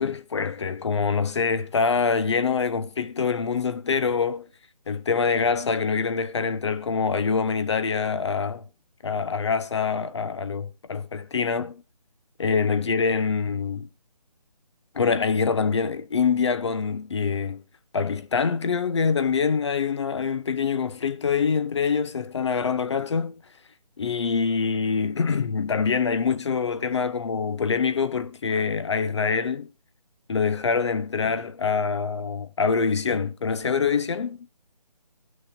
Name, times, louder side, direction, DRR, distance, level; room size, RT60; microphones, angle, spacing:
voice 1, 0.0-4.5 4.9-8.6 9.0-11.8 12.4-13.9 14.9-17.6 17.9-23.4 24.0-29.7 30.3-34.5, left 5 dB, 45° left, 0.7 m, -25 dB
18.0 x 6.3 x 2.5 m
figure-of-eight pair, 160°, 21 cm